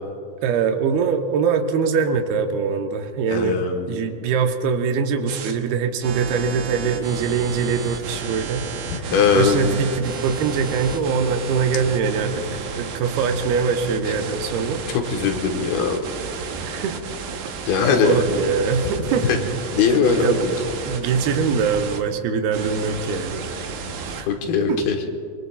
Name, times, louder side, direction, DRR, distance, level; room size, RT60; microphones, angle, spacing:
voice 1, 0.4-3.6 3.9-14.8 16.6-17.0 17.8-19.3 20.2-20.5 20.9-23.5 24.0-24.3 24.7-24.8, right 5 dB, 85° right, 5 dB, 2.9 m, -23 dB
voice 2, 3.3-4.1 8.9-9.7 15.1-16.0 17.7-18.2 19.2-19.4 19.7-20.3 24.3-25.0, left 6 dB, 75° left, 3 dB, 3.1 m, -20 dB
sound 1, 5.3-5.5 6.0-22.0 22.5-24.2, right 5 dB, 65° right, 1.8 m, -32 dB
26.0 x 23.0 x 2.4 m, 2.6 s
omnidirectional pair, 4.4 m